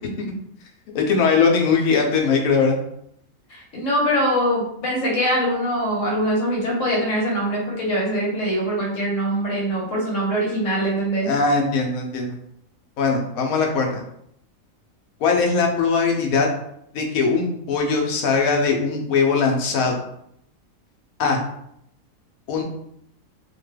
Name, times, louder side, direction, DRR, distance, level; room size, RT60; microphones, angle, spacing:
voice 1, 0.9-2.8 11.3-12.4 13.0-14.0 15.2-16.5 16.9-19.9 21.2-21.4 22.5-22.6, left 4 dB, 80° left, 1 dB, 1.1 m, -20 dB
voice 2, 3.5-11.3, equal, 65° left, -3 dB, 1.2 m, -23 dB
2.9 x 2.2 x 3.2 m, 0.74 s
omnidirectional pair, 1.5 m